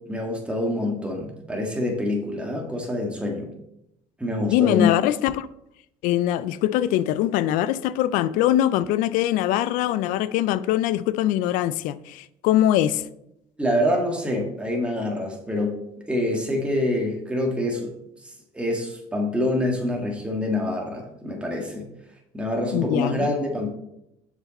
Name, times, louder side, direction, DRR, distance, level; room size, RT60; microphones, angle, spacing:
voice 1, 0.0-3.5 4.2-4.9 13.6-15.8 16.1-17.9 18.2-21.9 22.3-23.7, left 1 dB, 10° right, 1.6 m, -26 dB
voice 2, 4.5-5.5 6.0-13.1 22.7-23.3, left 13 dB, 80° left, 0.4 m, -22 dB
6.5 x 5.0 x 4.1 m
cardioid pair, 110°, 13 cm